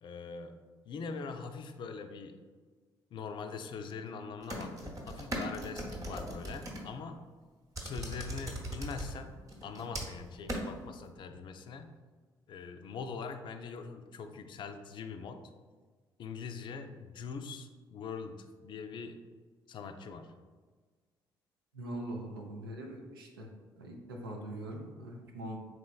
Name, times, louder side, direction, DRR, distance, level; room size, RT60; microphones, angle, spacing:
voice 1, 0.0-2.4 3.1-7.2 7.8-9.4 9.6-11.9 12.5-15.4 16.2-19.2 19.7-20.3, left 5 dB, 45° left, 7 dB, 0.3 m, -43 dB
sound 1, 4.4-6.8 7.8-9.1 9.5-10.2 10.5-10.6, right 1 dB, 30° right, 0.9 m, -39 dB
voice 2, 21.7-23.5 23.8-25.6, right 1 dB, 80° right, 1 dB, 0.4 m, -42 dB
4.0 x 3.1 x 2.3 m, 1.4 s
figure-of-eight pair, 45°, 12 cm